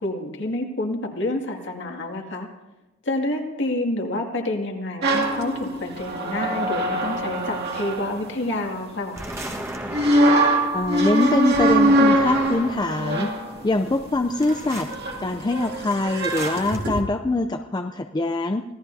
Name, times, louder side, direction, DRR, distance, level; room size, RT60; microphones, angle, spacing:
voice 1, 0.0-2.5 3.1-9.2, left 1 dB, 60° left, 1 dB, 2.2 m, -28 dB
sound 1, 5.0-9.0 9.9-17.0, right 1 dB, 50° right, 2.1 m, -23 dB
sound 2, 9.1-10.6 11.5-13.0 14.4-15.0 16.2-16.8, right 1 dB, 15° right, 1.4 m, -34 dB
voice 2, 10.7-13.3 13.6-14.9 15.2-18.6, left 2 dB, 20° left, 6 dB, 0.4 m, -23 dB
25.0 x 17.5 x 2.7 m, 1.0 s
head